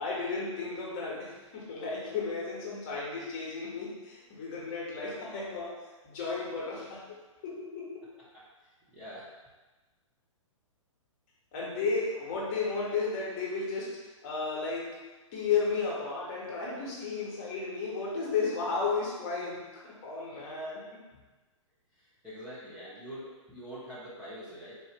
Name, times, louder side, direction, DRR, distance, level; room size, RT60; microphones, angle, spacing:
voice 1, 0.0-7.2 7.4-8.0 11.5-15.0 15.3-21.0, left 4 dB, 30° left, -5 dB, 0.9 m, -33 dB
voice 2, 8.3-9.3 20.3-20.5 21.9-24.8, equal, 5° right, -11 dB, 0.7 m, -45 dB
4.0 x 2.4 x 2.9 m, 1.2 s
figure-of-eight pair, 115°, 17 cm